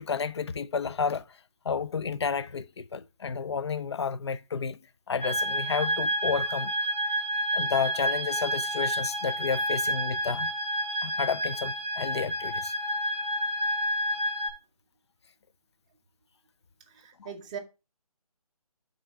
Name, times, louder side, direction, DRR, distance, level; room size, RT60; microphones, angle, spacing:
voice 1, 0.0-1.4 1.6-4.8 5.1-6.7 7.5-10.5 11.0-12.7, left 6 dB, 45° left, 0.4 m, -31 dB
sound 1, 5.2-14.5, right 1 dB, 10° left, 2.1 m, -29 dB
voice 2, 16.9-17.6, right 7 dB, 10° right, 0.6 m, -40 dB
8.0 x 3.9 x 4.2 m
figure-of-eight pair, 160°, 19 cm